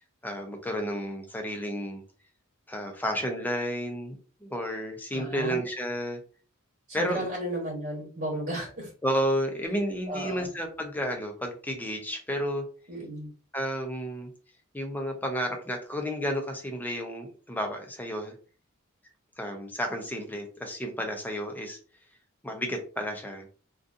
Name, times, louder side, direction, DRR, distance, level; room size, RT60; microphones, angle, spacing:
voice 1, 0.2-2.0 2.7-4.2 4.4-6.2 6.9-7.3 9.0-12.7 13.5-14.3 14.7-18.3 19.4-21.8 22.4-23.5, equal, 10° left, 3 dB, 0.5 m, -31 dB
voice 2, 5.1-5.6 6.9-8.9 10.1-10.5 12.9-13.3, right 1 dB, 40° right, -4 dB, 1.1 m, -34 dB
2.5 x 2.3 x 2.5 m, 0.38 s
head